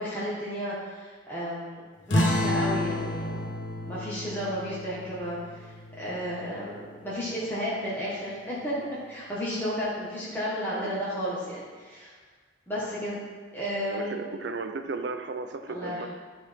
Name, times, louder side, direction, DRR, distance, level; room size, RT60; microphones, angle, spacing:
voice 1, 0.0-3.5 3.8-12.1 12.7-13.2 13.5-14.1 15.7-16.1, equal, 10° left, -9 dB, 1.4 m, -33 dB
sound 1, 2.1-7.1, left 1 dB, 90° left, 1.1 m, -30 dB
voice 2, 10.7-11.0 13.9-16.1, right 3 dB, 65° right, 7 dB, 0.6 m, -35 dB
11.5 x 4.0 x 3.5 m, 1.5 s
head